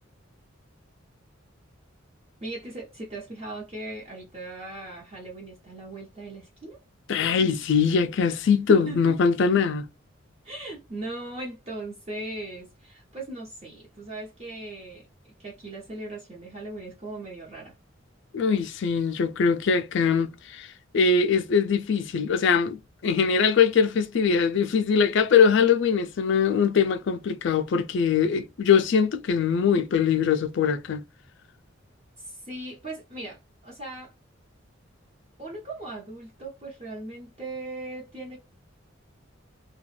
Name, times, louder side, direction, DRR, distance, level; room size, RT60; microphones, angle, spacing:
voice 1, 2.4-6.8 8.7-9.1 10.4-15.1 15.4-17.8 32.2-34.1 35.4-38.4, right 2 dB, 30° right, 0.8 m, -38 dB
voice 2, 7.1-9.9 18.3-20.7 20.9-31.0, left 6 dB, 60° left, 0.4 m, -22 dB
2.4 x 2.2 x 3.1 m
head